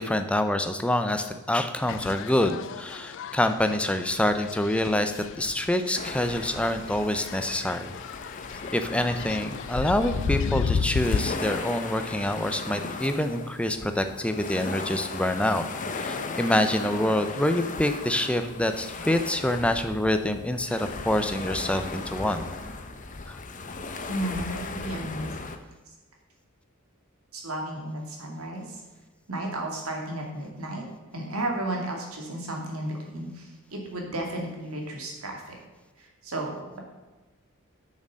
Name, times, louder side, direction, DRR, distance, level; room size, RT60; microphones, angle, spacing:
voice 1, 0.0-7.9 8.7-22.5 23.3-23.4, left 1 dB, 5° left, 8 dB, 0.6 m, -26 dB
sound 1, 1.9-11.4, left 6 dB, 60° left, 0.3 m, -33 dB
sound 2, 5.9-25.6, left 3 dB, 35° left, 0.8 m, -37 dB
voice 2, 24.1-25.4 27.3-28.8 29.3-30.8 31.1-35.5 36.0-36.8, right 1 dB, 85° right, 0 dB, 2.4 m, -33 dB
9.0 x 6.5 x 6.4 m, 1.2 s
head